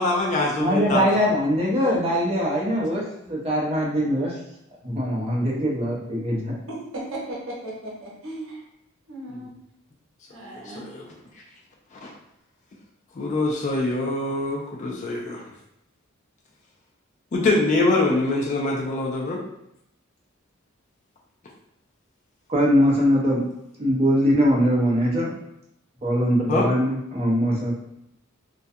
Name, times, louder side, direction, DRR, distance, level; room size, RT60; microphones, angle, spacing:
voice 1, 0.0-1.1 9.3-9.4 10.4-11.0 12.0-12.1 13.2-15.4 17.3-19.4 26.5-26.7, left 2 dB, 35° left, -2 dB, 0.3 m, -24 dB
voice 2, 0.6-4.4 4.8-6.5 22.5-23.4 23.8-25.4 26.0-27.7, equal, 30° right, -4 dB, 0.6 m, -22 dB
voice 3, 6.7-8.6 9.1-9.5 10.3-10.8, right 1 dB, 75° right, -4 dB, 0.8 m, -36 dB
2.3 x 2.1 x 2.6 m, 0.81 s
head